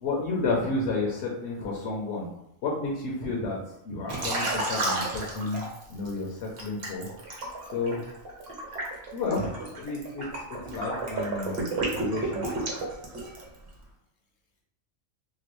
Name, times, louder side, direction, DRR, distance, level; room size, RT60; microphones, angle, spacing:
voice 1, 0.0-2.3 2.6-3.6 3.8-5.6 5.9-7.1 7.7-8.0 9.1-10.2 10.7-12.6, left 3 dB, 60° left, -3 dB, 0.8 m, -31 dB
Liquid, 4.1-6.1 6.6-13.6, right 2 dB, 50° right, 1.0 m, -32 dB
2.9 x 2.3 x 3.0 m, 0.84 s
omnidirectional pair, 1.4 m